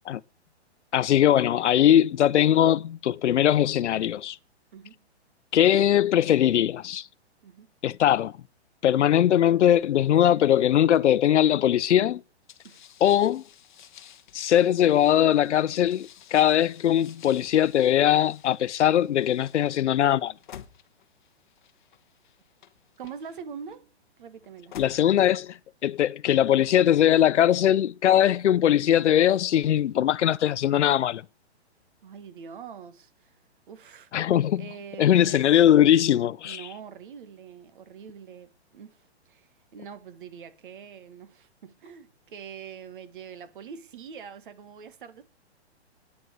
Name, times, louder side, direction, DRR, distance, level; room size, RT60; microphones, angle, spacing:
voice 1, 0.9-4.4 5.5-7.1 7.8-8.3 8.8-12.2 13.0-13.4 14.3-20.3 24.7-31.2 34.1-34.6 35.0-36.6, left 11 dB, 85° left, 0.6 m, -21 dB
voice 2, 4.7-5.0 7.4-7.7 12.6-12.8 23.0-24.8 32.0-35.5 36.4-45.2, right 7 dB, 50° right, 1.7 m, -44 dB
sound 1, 12.5-23.8 24.4-25.5, left 10 dB, 45° left, 1.1 m, -51 dB
9.3 x 7.8 x 9.4 m
hypercardioid pair, 165°, 34 cm